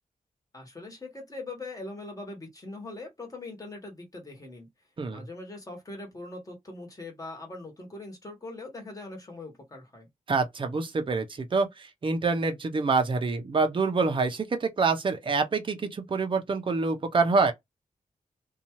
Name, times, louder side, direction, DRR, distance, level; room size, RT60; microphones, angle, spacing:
voice 1, 0.5-4.7 5.1-10.1, left 2 dB, 25° left, 1.3 m, -41 dB
voice 2, 10.3-17.5, right 4 dB, 35° right, 0.6 m, -26 dB
2.7 x 2.3 x 2.9 m
wide cardioid pair, 125°, 14 cm